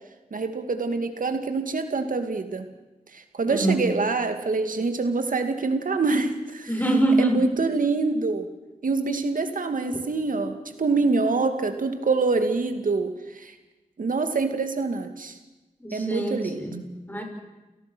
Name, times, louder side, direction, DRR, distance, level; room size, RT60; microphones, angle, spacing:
voice 1, 0.3-2.7 3.1-6.7 7.2-8.5 8.8-13.5 14.0-15.4 15.9-16.6, right 3 dB, 80° right, 7 dB, 2.3 m, -25 dB
voice 2, 3.5-3.9 6.7-7.4 15.8-17.2, right 1 dB, 15° left, 2 dB, 7.0 m, -24 dB
29.0 x 17.5 x 6.2 m, 1.1 s
cardioid pair, 55°, 14 cm